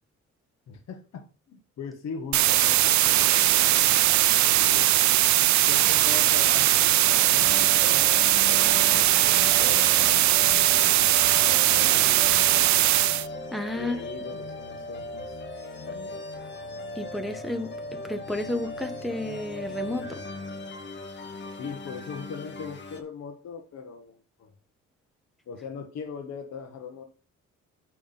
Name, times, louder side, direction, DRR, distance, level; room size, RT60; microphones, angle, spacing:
voice 1, 0.7-4.9 5.6-8.1 8.3-10.4 10.7-12.4 12.7-13.0 13.7-15.5 15.8-16.3 21.5-24.5 25.5-27.0, left 5 dB, 65° left, 1.3 m, -41 dB
sound 1, 2.3-13.3, right 14 dB, 70° right, 0.5 m, -20 dB
sound 2, 7.0-23.0, left 2 dB, 35° left, 1.1 m, -38 dB
voice 2, 13.5-14.0 17.0-20.2, left 1 dB, ahead, 1.0 m, -32 dB
9.1 x 3.5 x 5.7 m
cardioid pair, 90°, 30 cm